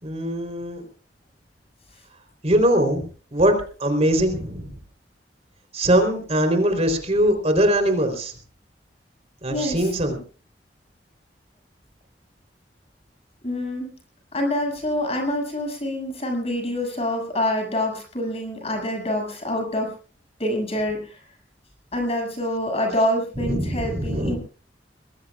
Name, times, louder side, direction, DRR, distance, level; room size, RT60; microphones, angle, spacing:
voice 1, 0.0-0.8 2.4-3.5 3.8-4.7 5.7-8.3 9.4-10.2 23.4-24.3, right 1 dB, 40° right, 6 dB, 3.8 m, -21 dB
voice 2, 9.5-9.9 13.4-13.9 14.3-19.9 20.4-21.2 21.9-24.4, left 1 dB, 35° left, 3 dB, 7.1 m, -26 dB
24.0 x 21.0 x 2.5 m, 0.39 s
head